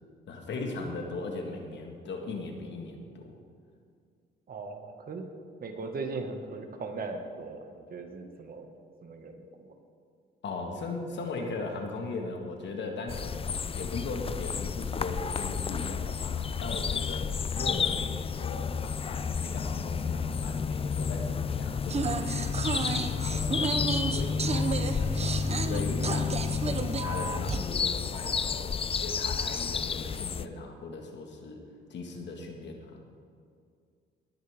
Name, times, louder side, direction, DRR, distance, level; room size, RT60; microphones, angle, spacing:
voice 1, 0.3-3.4 10.4-17.3 17.5-25.1 25.6-26.6 27.0-31.6 31.9-33.0, left 3 dB, 65° left, 2 dB, 1.8 m, -38 dB
voice 2, 4.5-5.3 5.6-8.7 9.0-9.7, right 3 dB, 50° right, 4 dB, 1.8 m, -39 dB
sound 1, 13.1-30.5, left 6 dB, 30° left, 0.4 m, -31 dB
sound 2, 21.9-27.6, right 4 dB, 30° right, 0.9 m, -32 dB
19.0 x 10.0 x 3.6 m, 2.2 s
cardioid pair, 90°, 20 cm